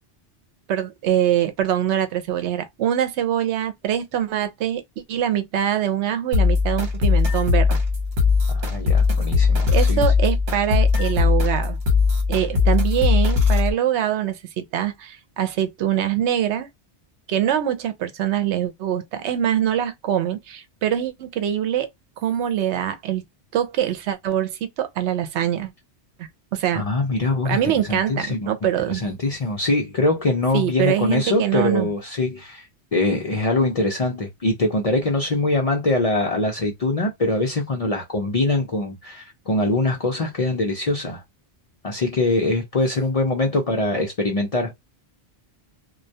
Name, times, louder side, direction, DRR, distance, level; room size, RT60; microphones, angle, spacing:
voice 1, 0.7-4.8 5.1-7.8 9.7-11.8 12.3-16.7 17.3-21.9 22.2-23.2 23.5-25.7 26.2-26.8 27.4-29.0 30.5-31.9, right 10 dB, 80° right, 0.9 m, -23 dB
sound 1, 6.3-13.7, left 5 dB, 65° right, 1.1 m, -19 dB
voice 2, 8.5-10.0 26.7-27.6 27.9-28.5 28.9-32.7 32.9-41.2 41.8-44.7, left 2 dB, 50° left, 0.4 m, -23 dB
2.2 x 2.2 x 2.6 m
omnidirectional pair, 1.1 m